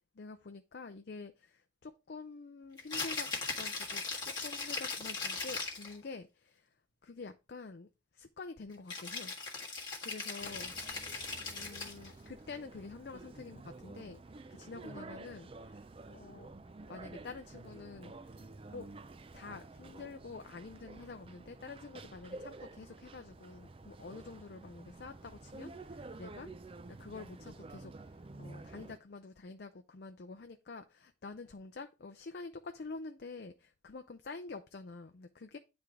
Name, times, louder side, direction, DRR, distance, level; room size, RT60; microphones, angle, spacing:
voice 1, 0.2-6.7 7.0-7.9 8.1-9.3 10.0-11.1 11.4-14.2 14.5-15.8 16.1-16.5 16.9-18.4 18.7-18.9 19.3-26.5 26.9-35.6, left 3 dB, 55° left, 8 dB, 0.5 m, -48 dB
Rattle (instrument), 2.8-6.0 8.9-12.1, left 4 dB, 25° left, 1.5 m, -39 dB
sound 1, 10.4-29.0, right 2 dB, 30° right, 0.4 m, -50 dB
9.7 x 3.5 x 4.8 m, 0.28 s
head